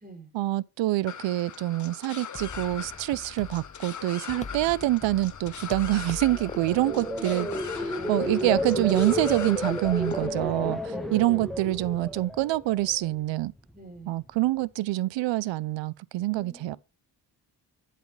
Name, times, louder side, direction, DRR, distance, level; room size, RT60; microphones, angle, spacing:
voice 1, 0.3-7.5 8.1-10.8 11.1-13.5 14.1-16.8, right 16 dB, 85° right, 0.6 m, -26 dB
sound 1, 1.1-10.3, left 8 dB, 40° left, 1.0 m, -41 dB
sound 2, 2.3-10.6, left 5 dB, 20° left, 0.4 m, -43 dB
sound 3, 6.0-13.2 13.6-14.0, left 1 dB, ahead, 1.1 m, -32 dB
voice 2, 6.8-8.4 9.9-10.6 10.9-11.4 13.7-14.2 16.3-16.8, right 2 dB, 20° right, 3.9 m, -42 dB
8.0 x 7.5 x 3.1 m
cardioid pair, 105°, 43 cm